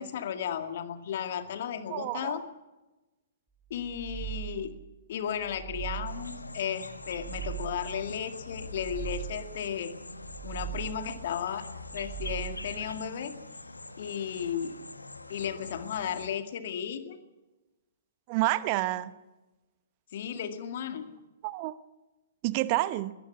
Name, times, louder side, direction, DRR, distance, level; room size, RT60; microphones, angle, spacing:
voice 1, 0.0-2.5 3.7-4.7 5.1-10.0 10.4-11.6 11.9-13.4 14.0-14.8 15.3-17.2 20.1-21.1, left 8 dB, 50° left, 8 dB, 2.2 m, -34 dB
voice 2, 1.9-2.3 18.3-19.1 21.4-21.8 22.4-23.1, right 18 dB, 35° right, 16 dB, 0.9 m, -28 dB
sound 1, 3.7-4.8 5.3-6.4 6.9-8.0 8.5-9.6 10.1-11.2 11.7-12.8, right 13 dB, 5° right, 3.9 m, -40 dB
sound 2, 6.1-16.3, left 2 dB, 80° left, 1.5 m, -44 dB
22.5 x 18.5 x 7.1 m, 1.1 s
figure-of-eight pair, 115°, 0 cm